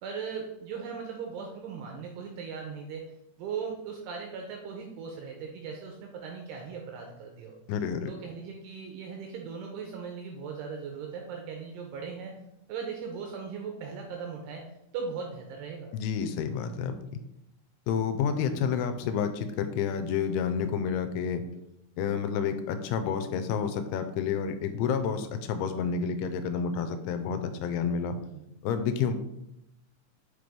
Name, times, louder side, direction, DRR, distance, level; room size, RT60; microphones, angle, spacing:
voice 1, 0.0-3.0 3.4-7.6 8.1-12.3 12.7-14.6 14.9-15.9 28.2-28.4, right 6 dB, 85° right, 1 dB, 2.4 m, -38 dB
voice 2, 7.7-8.1 15.9-17.2 17.9-21.4 22.0-28.2 28.6-29.1, left 7 dB, 85° left, 8 dB, 3.0 m, -29 dB
6.4 x 5.2 x 3.4 m, 0.84 s
omnidirectional pair, 5.5 m